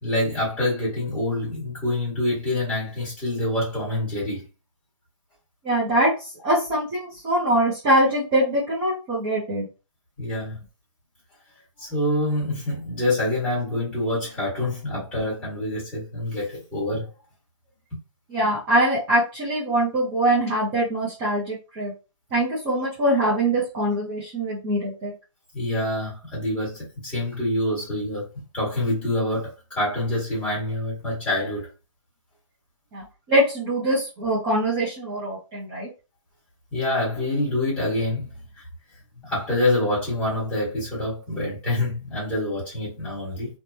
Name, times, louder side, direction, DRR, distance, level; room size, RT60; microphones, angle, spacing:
voice 1, 0.0-4.4 10.2-10.6 11.8-17.1 25.5-28.3 28.5-31.6 36.7-38.3 39.2-43.5, left 1 dB, 5° left, 1.3 m, -26 dB
voice 2, 5.6-9.7 18.3-21.9 22.3-25.1 32.9-35.9, right 1 dB, 10° right, 0.5 m, -23 dB
3.0 x 2.1 x 2.6 m
hypercardioid pair, 165°, 17 cm